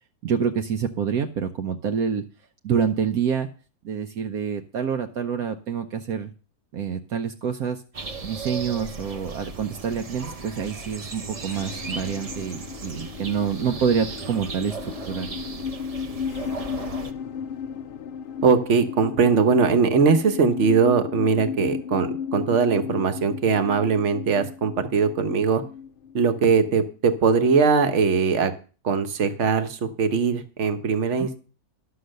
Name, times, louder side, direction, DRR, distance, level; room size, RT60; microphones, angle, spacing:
voice 1, 0.2-2.2 2.6-3.5 3.8-6.3 6.7-7.8 8.2-15.4 31.2-31.3, right 7 dB, 70° right, 7 dB, 1.2 m, -27 dB
sound 1, 7.9-17.1, right 4 dB, 35° right, 0.6 m, -37 dB
sound 2, 11.3-26.9, left 7 dB, 60° left, 0.6 m, -35 dB
voice 2, 18.4-25.6 26.1-28.5 28.8-31.4, right 5 dB, 50° right, 10 dB, 1.3 m, -21 dB
11.5 x 6.9 x 6.5 m, 0.37 s
omnidirectional pair, 1.7 m